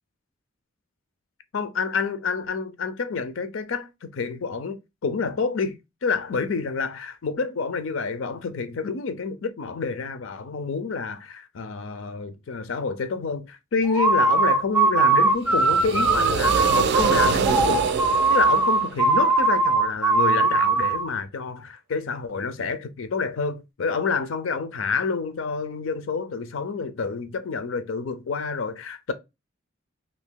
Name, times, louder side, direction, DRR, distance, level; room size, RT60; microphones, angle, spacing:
voice 1, 1.5-17.8 18.3-29.1, left 4 dB, 85° left, 0.5 m, -28 dB
sound 1, 13.8-21.1, right 3 dB, 5° right, 0.6 m, -20 dB
sound 2, 15.4-19.4, right 6 dB, 60° right, 0.3 m, -26 dB
2.8 x 2.6 x 3.6 m
head